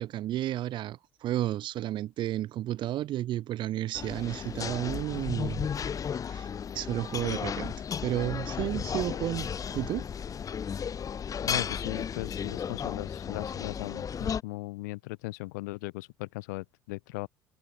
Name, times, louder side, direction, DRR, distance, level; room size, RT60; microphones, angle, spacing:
voice 1, 0.0-5.7 6.3-6.5 6.7-7.8 8.0-10.1, right 13 dB, 55° right, 4.2 m, -32 dB
sound 1, 3.9-14.4, left 7 dB, 35° left, 1.1 m, -34 dB
voice 2, 11.5-17.3, left 24 dB, 70° left, 5.8 m, -38 dB
figure-of-eight pair, 55°, 10 cm